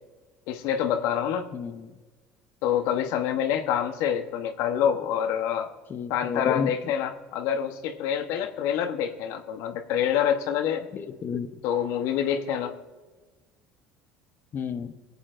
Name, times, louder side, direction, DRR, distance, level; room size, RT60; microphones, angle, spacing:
voice 1, 0.5-1.5 2.6-5.7 6.1-10.9 11.6-12.7, left 9 dB, 75° left, 7 dB, 0.9 m, -26 dB
voice 2, 1.5-1.9 5.9-6.7 10.9-11.5 14.5-14.9, left 6 dB, 45° left, 7 dB, 0.8 m, -31 dB
24.0 x 8.5 x 2.5 m, 1.3 s
supercardioid pair, 85°, 5 cm